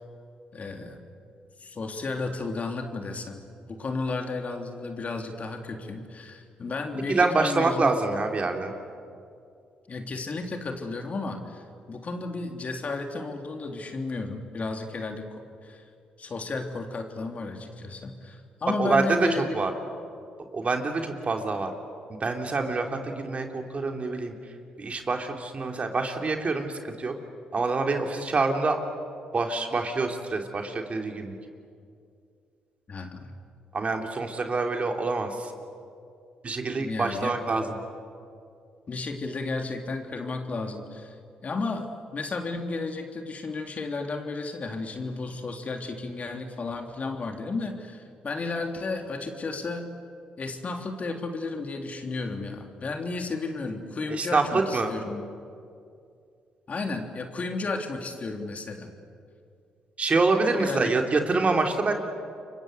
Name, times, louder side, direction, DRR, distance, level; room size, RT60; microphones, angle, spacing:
voice 1, 0.5-1.0 1.6-8.0 9.9-15.8 16.2-19.6 32.9-33.3 36.7-37.4 38.9-41.2 41.4-49.8 50.4-55.3 56.7-58.9 60.6-60.9, left 3 dB, 45° left, 4 dB, 3.5 m, -33 dB
voice 2, 7.1-8.8 18.8-19.7 20.5-21.7 22.2-24.3 24.8-27.1 27.5-28.8 29.3-31.3 33.7-35.5 36.4-37.8 54.1-54.9 60.0-61.9, right 3 dB, 40° right, 4 dB, 3.6 m, -26 dB
29.0 x 24.0 x 8.1 m, 2.4 s
hypercardioid pair, 45°, 3 cm